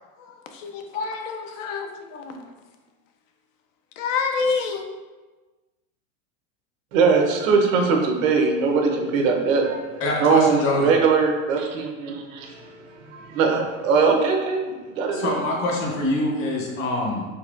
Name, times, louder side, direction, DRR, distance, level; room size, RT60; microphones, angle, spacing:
voice 1, 0.5-1.9 2.1-2.3 4.0-4.8, left 5 dB, 70° left, 4 dB, 0.6 m, -27 dB
voice 2, 6.9-9.8 10.2-15.3, right 5 dB, 80° right, 2 dB, 0.8 m, -21 dB
voice 3, 10.0-10.9 15.1-17.3, left 2 dB, 35° left, -1 dB, 0.8 m, -24 dB
4.2 x 2.7 x 2.4 m, 1.3 s
supercardioid pair, 135°, 40 cm